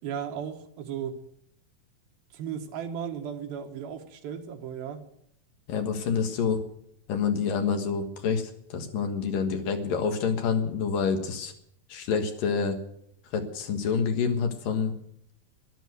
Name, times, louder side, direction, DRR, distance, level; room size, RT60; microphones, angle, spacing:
voice 1, 0.0-1.2 2.3-5.0, right 8 dB, 85° right, 5 dB, 3.3 m, -35 dB
voice 2, 5.7-6.6 7.1-11.5 11.9-12.8 13.3-14.9, left 6 dB, 70° left, 5 dB, 3.1 m, -27 dB
12.5 x 12.0 x 8.0 m, 0.73 s
omnidirectional pair, 4.1 m